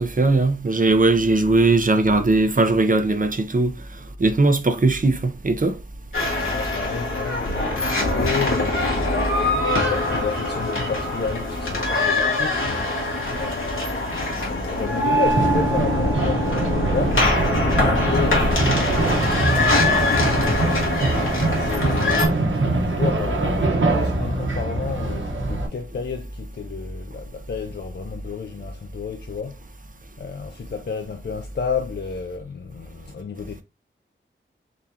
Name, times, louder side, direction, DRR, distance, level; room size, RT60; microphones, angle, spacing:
voice 1, 0.0-3.7 4.2-5.8, right 2 dB, 40° right, 0.7 m, -19 dB
Daydream Overlay, 6.1-22.3, left 2 dB, 85° left, 1.6 m, -23 dB
voice 2, 6.3-21.0 21.5-29.6 30.2-33.6, left 5 dB, 55° left, 0.5 m, -32 dB
sound 1, 15.2-25.7, right 2 dB, 70° right, 1.0 m, -23 dB
3.9 x 3.6 x 2.8 m
wide cardioid pair, 65°, 21 cm